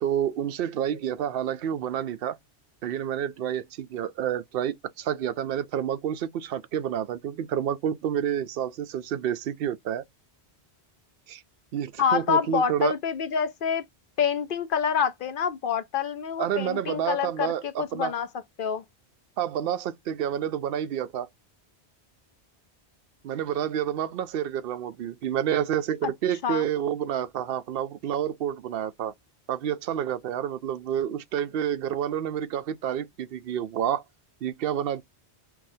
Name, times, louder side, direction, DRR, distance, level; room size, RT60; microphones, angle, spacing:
voice 1, 0.0-2.4 2.8-10.0 11.3-11.4 11.7-12.9 16.4-18.1 19.4-21.3 23.2-29.1 29.5-34.0 34.4-35.0, right 9 dB, 65° right, 0.7 m, -29 dB
voice 2, 12.0-13.8 14.2-18.3 18.6-18.8 26.0-26.1 26.4-26.6, left 7 dB, 60° left, 0.7 m, -27 dB
5.9 x 2.4 x 2.6 m
omnidirectional pair, 1.1 m